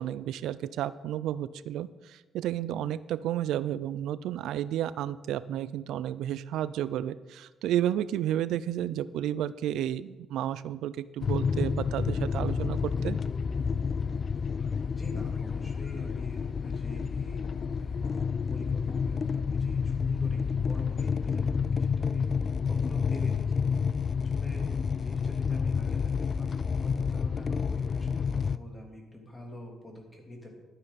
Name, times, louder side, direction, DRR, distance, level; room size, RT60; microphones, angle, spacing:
voice 1, 0.0-13.2, right 11 dB, 85° right, 17 dB, 0.3 m, -32 dB
Overnight Train from Trondheim to Oslo, 11.2-28.6, left 6 dB, 45° left, 0.3 m, -29 dB
voice 2, 15.0-18.0 18.5-23.8 24.2-24.7 25.0-30.5, equal, 20° left, 0 dB, 3.2 m, -46 dB
12.0 x 10.0 x 4.1 m, 1.2 s
cardioid pair, 90°, 0 cm